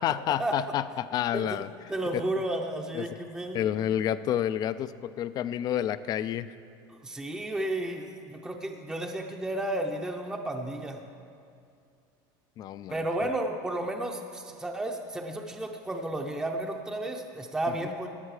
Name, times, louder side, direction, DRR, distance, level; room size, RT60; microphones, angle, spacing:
voice 1, 0.0-1.7 2.9-3.1 3.5-6.5 12.6-13.1, left 11 dB, 35° left, 14 dB, 0.4 m, -29 dB
voice 2, 1.3-1.6 1.9-3.7 6.9-11.0 12.9-18.1, right 1 dB, 5° right, 2 dB, 0.6 m, -32 dB
16.0 x 10.0 x 4.9 m, 2.4 s
cardioid pair, 150°, 11 cm